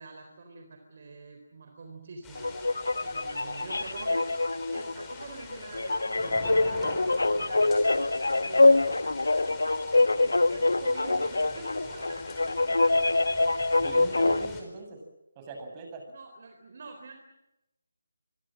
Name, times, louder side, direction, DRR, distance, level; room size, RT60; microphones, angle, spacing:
voice 1, 0.0-2.5 3.0-4.3 4.6-13.1 16.1-17.1, right 3 dB, 45° right, 5 dB, 3.9 m, -46 dB
sound 1, 2.2-14.6, left 4 dB, 10° left, 4.4 m, -46 dB
sound 2, 2.4-14.5, left 2 dB, 70° left, 1.2 m, -25 dB
voice 2, 13.7-15.0 15.4-16.1, right 2 dB, 20° right, 3 dB, 7.4 m, -40 dB
26.0 x 23.5 x 7.6 m, 0.92 s
figure-of-eight pair, 155°, 0 cm